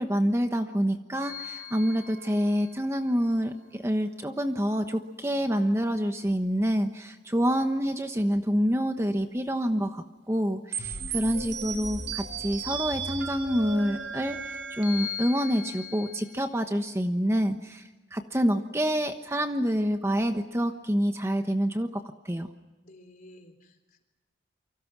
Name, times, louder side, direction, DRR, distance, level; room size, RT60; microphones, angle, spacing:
voice 1, 0.0-22.5, equal, 15° right, 6 dB, 1.1 m, -27 dB
sound 1, 1.2-2.7 10.7-16.5, right 2 dB, 85° right, 4.7 m, -36 dB
voice 2, 10.8-11.3 22.8-24.0, left 1 dB, 45° left, 6 dB, 3.9 m, -53 dB
29.0 x 25.0 x 6.1 m, 1.1 s
head